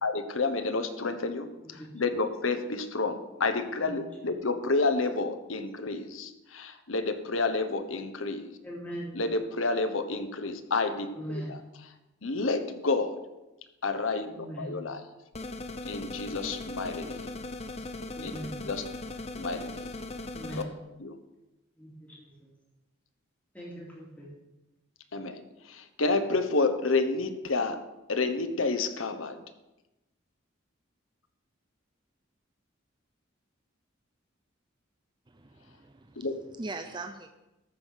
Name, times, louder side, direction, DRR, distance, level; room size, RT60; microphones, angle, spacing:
voice 1, 0.0-1.5 1.9-8.5 9.2-11.6 12.2-13.2 13.8-14.3 14.6-15.0 15.9-17.3 18.2-18.3 18.6-18.8 19.3-19.8 21.0-21.2 25.1-25.4 25.7-27.8 28.1-29.4 36.2-36.3, left 3 dB, 75° left, 1.1 m, -29 dB
voice 2, 3.8-4.2 8.6-9.2 11.1-11.6 14.3-14.7 17.8-17.9 18.1-18.7 20.3-20.7 21.8-22.5 23.5-24.3, right 1 dB, 5° left, 3.7 m, -41 dB
sound 1, 15.3-20.6, left 2 dB, 30° left, 0.7 m, -39 dB
voice 3, 35.3-37.3, right 3 dB, 20° right, 0.5 m, -41 dB
14.0 x 5.7 x 6.4 m
head